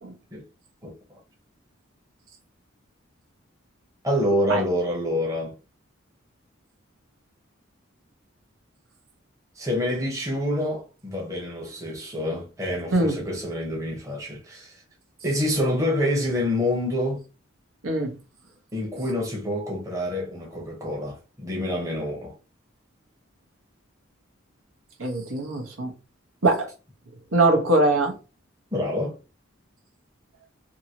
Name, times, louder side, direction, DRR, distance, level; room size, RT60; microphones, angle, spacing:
voice 1, 4.0-5.5 9.6-14.8 15.2-17.2 18.7-22.3 28.7-29.1, left 1 dB, 15° right, 0.8 m, -27 dB
voice 2, 17.8-18.1 25.0-25.9 26.4-26.7 27.3-28.2, right 2 dB, 90° right, 1.0 m, -22 dB
2.8 x 2.7 x 2.8 m
head